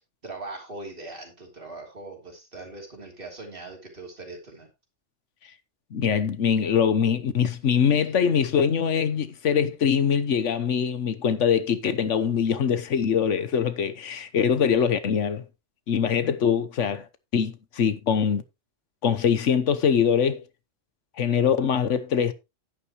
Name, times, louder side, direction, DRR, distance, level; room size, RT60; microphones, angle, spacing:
voice 1, 0.2-4.7, right 2 dB, 45° right, 3.3 m, -40 dB
voice 2, 5.9-15.4 15.9-17.1 17.3-18.4 19.0-20.4 21.2-22.3, left 7 dB, 80° left, 1.3 m, -23 dB
10.5 x 10.0 x 3.0 m
omnidirectional pair, 1.3 m